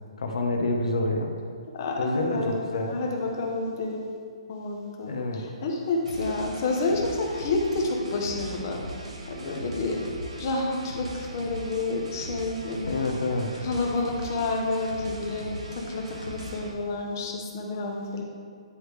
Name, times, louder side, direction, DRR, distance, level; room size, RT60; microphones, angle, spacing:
voice 1, 0.2-1.3 2.0-3.0 5.0-5.4 12.8-13.5, left 2 dB, 70° left, 2 dB, 1.0 m, -27 dB
voice 2, 1.7-4.1 4.5-8.8 9.3-10.0 10.4-13.1 13.6-18.2, left 3 dB, 30° left, 0 dB, 0.9 m, -29 dB
sound 1, 6.1-16.7, right 1 dB, 80° right, 1.2 m, -39 dB
9.9 x 4.9 x 3.3 m, 2.1 s
hypercardioid pair, 175°, 3 cm